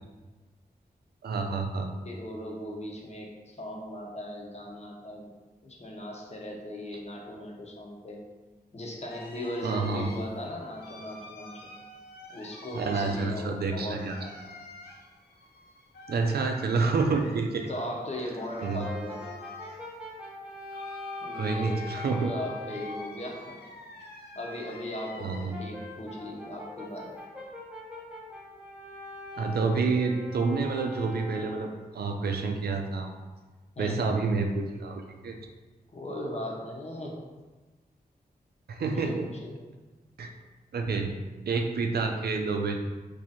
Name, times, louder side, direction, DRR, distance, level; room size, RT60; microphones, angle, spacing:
voice 1, 1.2-1.9 9.6-10.1 12.7-14.2 16.1-17.7 18.6-18.9 21.3-22.3 25.2-25.6 29.4-33.1 33.8-35.3 38.7-39.3 40.2-40.3 40.7-41.1 41.5-42.8, right 4 dB, 80° right, 3 dB, 0.4 m, -28 dB
voice 2, 2.0-5.3 5.6-8.2 8.7-11.7 12.3-14.5 17.7-19.2 21.2-24.0 24.3-27.1 33.8-34.0 35.9-37.2 38.8-39.5, left 1 dB, 40° left, -1 dB, 0.8 m, -38 dB
sound 1, 9.1-25.7 26.1-27.2, left 2 dB, 90° left, 0.5 m, -48 dB
Brass instrument, 18.6-23.1 25.5-31.8, left 2 dB, 5° right, 0.7 m, -42 dB
3.0 x 2.6 x 4.1 m, 1.2 s
wide cardioid pair, 70°, 16 cm